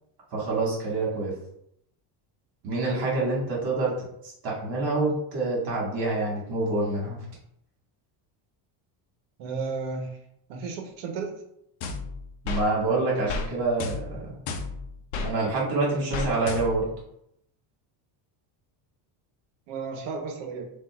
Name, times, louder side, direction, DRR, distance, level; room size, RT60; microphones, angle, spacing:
voice 1, 0.3-1.3 2.6-3.9 4.4-7.2 12.4-14.4 15.2-16.9, right 2 dB, 45° right, -4 dB, 1.8 m, -26 dB
voice 2, 9.4-10.2 10.5-11.3 19.7-20.7, right 4 dB, 70° right, 3 dB, 1.1 m, -33 dB
sound 1, 11.8-12.7 13.3-13.5 13.8-15.3 16.1-16.9, left 4 dB, 65° left, 0.7 m, -32 dB
7.4 x 2.7 x 2.4 m, 0.76 s
cardioid pair, 175°, 49 cm